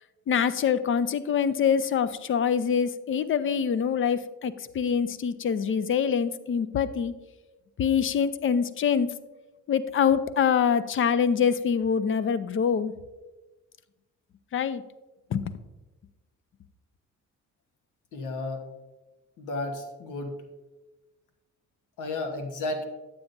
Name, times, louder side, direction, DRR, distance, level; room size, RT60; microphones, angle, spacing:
voice 1, 0.3-7.1 7.8-9.1 9.7-12.9 14.5-14.8 15.3-15.6, left 7 dB, 45° left, 14 dB, 0.5 m, -25 dB
voice 2, 18.1-18.7 19.4-20.4 22.0-22.8, left 2 dB, 85° left, 4 dB, 1.2 m, -33 dB
9.4 x 8.3 x 2.6 m, 1.1 s
cardioid pair, 90°, 30 cm